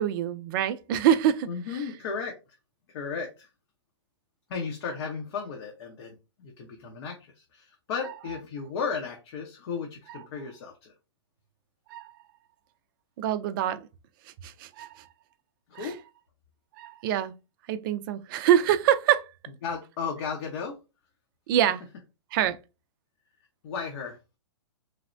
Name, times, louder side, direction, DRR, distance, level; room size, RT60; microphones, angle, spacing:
voice 1, 0.0-1.5 11.9-12.1 13.2-13.9 14.4-15.1 15.7-15.9 16.8-17.3 17.7-19.3 21.5-21.8 22.3-22.6, right 10 dB, 45° right, 0.4 m, -25 dB
voice 2, 1.5-2.4 2.9-3.5 4.5-10.9 15.7-16.0 19.6-20.7 23.6-24.2, left 5 dB, 55° left, 0.8 m, -35 dB
3.2 x 2.0 x 2.5 m
hypercardioid pair, 130°, 16 cm